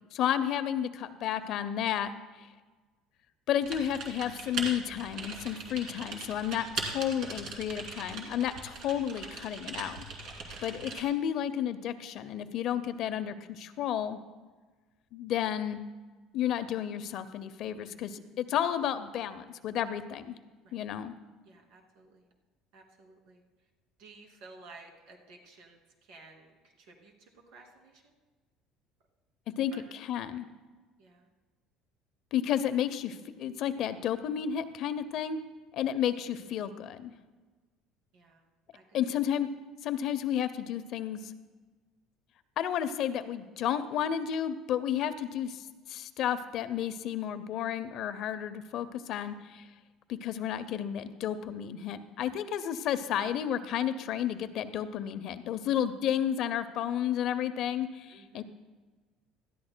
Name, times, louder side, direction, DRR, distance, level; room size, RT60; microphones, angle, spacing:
voice 1, 0.1-2.1 2.4-2.5 3.5-10.0 10.6-14.2 15.1-15.8 16.3-20.4 20.7-21.1 29.6-30.5 32.3-35.4 35.7-37.1 38.9-39.5 39.8-41.2 42.6-49.7 50.1-58.4, left 10 dB, 50° left, 11 dB, 0.6 m, -32 dB
Typing, 3.6-11.0, right 4 dB, 50° right, 2.4 m, -40 dB
voice 2, 18.1-18.4 20.6-20.8 21.4-22.3 22.7-23.4 24.0-28.1 29.7-29.8 31.0-31.3 35.8-35.9 38.1-38.5 38.7-39.2 58.1-58.4, right 3 dB, 75° right, 1 dB, 2.5 m, -55 dB
19.5 x 13.5 x 2.2 m, 1.3 s
cardioid pair, 155°, 0 cm